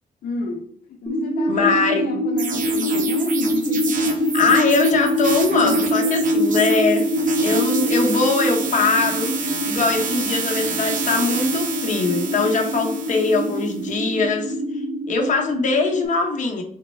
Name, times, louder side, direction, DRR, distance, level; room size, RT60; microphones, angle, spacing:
voice 1, 0.2-0.7 1.0-4.7 5.6-5.9, left 4 dB, 70° left, 0.5 m, -31 dB
sound 1, 1.1-16.1, equal, 20° right, 0.6 m, -24 dB
voice 2, 1.5-2.1 4.3-7.1 7.4-14.5 15.1-16.6, left 4 dB, 55° left, 0.9 m, -21 dB
sound 2, 2.4-13.8, right 5 dB, 55° right, 0.8 m, -29 dB
4.3 x 2.1 x 3.1 m
cardioid pair, 90°, 16 cm